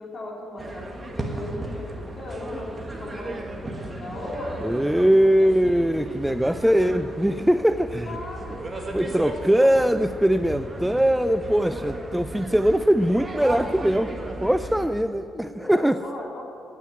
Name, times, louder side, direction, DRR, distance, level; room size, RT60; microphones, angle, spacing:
voice 1, 0.0-2.7 3.0-4.8 5.4-6.0 6.4-6.9 7.7-8.6 9.0-9.7 11.5-11.9 15.3-16.4, left 1 dB, 45° left, -3 dB, 3.6 m, -37 dB
sound 1, 0.6-14.9, right 2 dB, 20° right, 1.5 m, -36 dB
voice 2, 4.6-8.2 8.9-14.1 14.4-16.0, equal, 5° right, 11 dB, 0.3 m, -21 dB
9.3 x 9.0 x 9.3 m, 2.6 s
cardioid pair, 90°, 0 cm